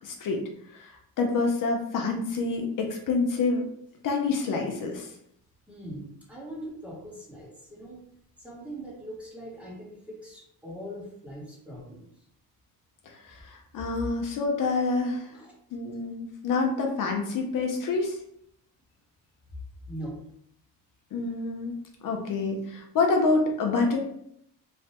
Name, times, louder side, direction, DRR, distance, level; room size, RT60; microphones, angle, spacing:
voice 1, 0.0-0.4 0.7-3.6 4.0-5.1 13.1-15.3 15.7-18.2 21.1-21.7 22.0-24.0, left 3 dB, 60° left, 2 dB, 0.5 m, -27 dB
voice 2, 5.7-8.0 8.4-12.1 15.3-15.6 19.9-20.2, equal, 5° right, -5 dB, 0.9 m, -41 dB
3.1 x 2.1 x 2.8 m, 0.71 s
cardioid pair, 125°, 37 cm